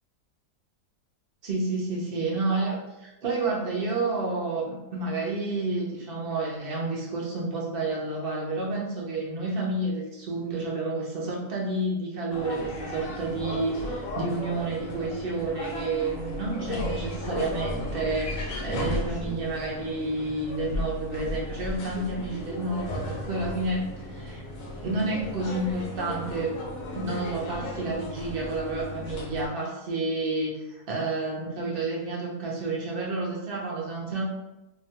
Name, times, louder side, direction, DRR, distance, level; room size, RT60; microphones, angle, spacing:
voice 1, 1.4-24.4 24.7-26.6 26.9-34.2, right 2 dB, 60° right, -4 dB, 0.6 m, -30 dB
sound 1, 12.3-29.5, left 1 dB, 70° left, 0.9 m, -35 dB
2.7 x 2.2 x 2.8 m, 0.97 s
omnidirectional pair, 1.7 m